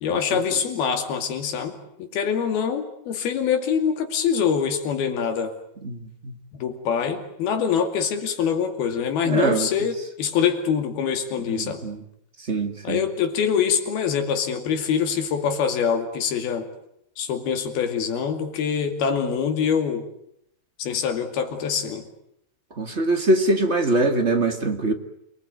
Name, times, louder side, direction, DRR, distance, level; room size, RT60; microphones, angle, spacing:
voice 1, 0.0-5.5 6.5-11.8 12.8-16.7 17.2-20.1 20.8-22.0, left 7 dB, 80° left, 6 dB, 4.4 m, -24 dB
voice 2, 9.3-9.7 11.6-12.0 12.5-13.0 22.8-24.9, right 2 dB, 30° right, 6 dB, 1.3 m, -22 dB
28.5 x 19.5 x 9.6 m, 0.76 s
omnidirectional pair, 4.3 m